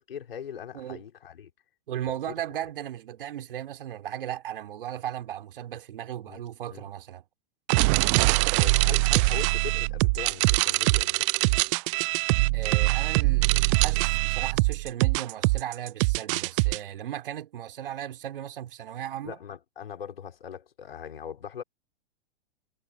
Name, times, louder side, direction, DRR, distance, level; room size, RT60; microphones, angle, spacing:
voice 1, 0.1-1.5 2.3-2.4 6.3-6.4 6.7-6.9 8.6-11.3 19.2-21.6, left 8 dB, 70° left, 4.9 m, -40 dB
voice 2, 1.9-7.2 12.5-19.4, right 11 dB, 60° right, 4.1 m, -36 dB
sound 1, 7.7-16.8, right 28 dB, 30° right, 0.5 m, -23 dB
figure-of-eight pair, 110°, 30 cm